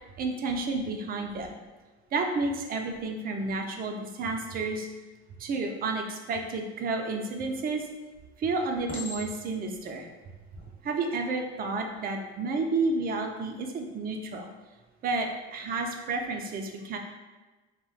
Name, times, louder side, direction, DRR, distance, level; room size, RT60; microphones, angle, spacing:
voice 1, 0.2-1.6 2.1-4.9 5.4-7.8 8.4-10.0 10.8-14.5 15.0-17.0, right 3 dB, 30° right, 3 dB, 0.4 m, -31 dB
Chink clink, 7.4-7.9 8.9-9.7 10.4-10.7, left 2 dB, 25° left, 1.1 m, -41 dB
2.2 x 2.1 x 3.8 m, 1.2 s
hypercardioid pair, 70°, 33 cm